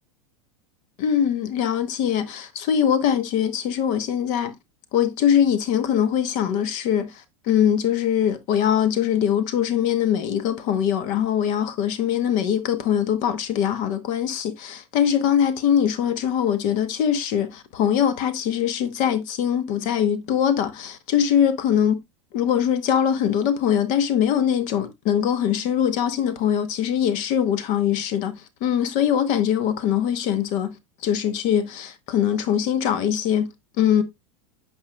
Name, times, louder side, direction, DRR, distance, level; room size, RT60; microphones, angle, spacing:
voice 1, 1.0-4.5 4.9-22.0 22.3-34.0, left 9 dB, 55° left, 0.9 m, -22 dB
8.7 x 4.8 x 2.2 m
hypercardioid pair, 115°, 16 cm